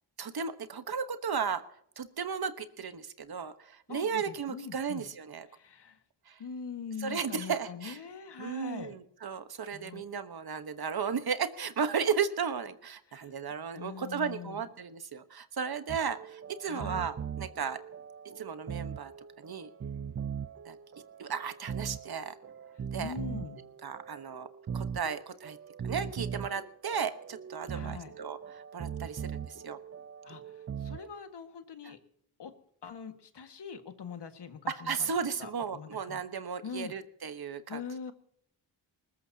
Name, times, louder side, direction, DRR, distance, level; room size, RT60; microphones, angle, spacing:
voice 1, 0.2-1.6 2.0-5.5 6.3-6.4 7.0-8.0 8.4-17.8 18.4-19.1 19.4-19.7 20.6-20.8 21.2-22.4 22.9-23.1 23.8-24.5 24.7-25.6 25.8-29.8 31.8-31.9 34.7-37.8, right 6 dB, 55° right, 10 dB, 1.3 m, -35 dB
voice 2, 3.9-5.1 5.5-6.0 6.4-8.9 9.7-10.0 13.1-13.3 13.8-14.6 16.6-17.1 23.0-23.6 27.7-28.1 30.2-30.4 30.8-32.0 32.4-32.5 32.8-36.2 36.6-36.9 37.7-38.1, left 6 dB, 65° left, 7 dB, 1.9 m, -43 dB
sound 1, 15.9-31.1, right 7 dB, 35° right, 0.5 m, -40 dB
20.5 x 19.5 x 2.9 m, 0.67 s
cardioid pair, 80°, 43 cm